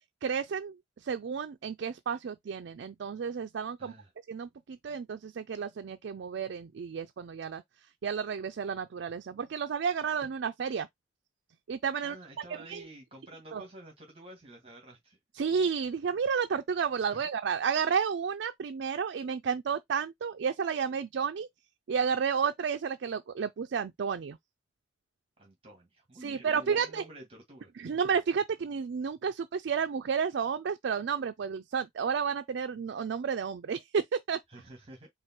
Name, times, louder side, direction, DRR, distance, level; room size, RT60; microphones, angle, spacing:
voice 1, 0.2-0.7 1.0-3.9 4.3-7.6 8.0-10.9 11.7-12.2 12.5-12.8 13.5-13.6 15.4-21.5 21.9-24.4 26.2-27.0 27.8-34.4, right 6 dB, 70° right, 0.4 m, -31 dB
voice 2, 3.8-4.1 12.0-15.2 17.1-17.2 25.4-27.7 34.5-35.1, right 1 dB, 30° right, 1.9 m, -50 dB
4.8 x 2.0 x 4.4 m
head